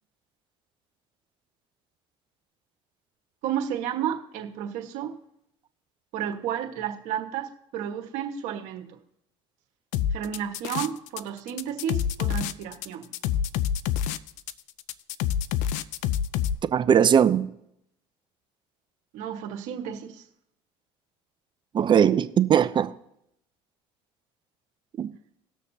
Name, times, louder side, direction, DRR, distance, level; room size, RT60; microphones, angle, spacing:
voice 1, 3.4-5.1 6.1-9.0 10.1-13.1 19.1-20.2, right 9 dB, 70° right, 1.5 m, -32 dB
sound 1, 9.9-11.2 11.5-16.5, left 10 dB, 70° left, 0.5 m, -27 dB
voice 2, 16.7-17.5 21.7-22.9 25.0-25.1, right 8 dB, 40° right, 0.6 m, -20 dB
19.0 x 6.5 x 2.8 m
supercardioid pair, 85°, 13 cm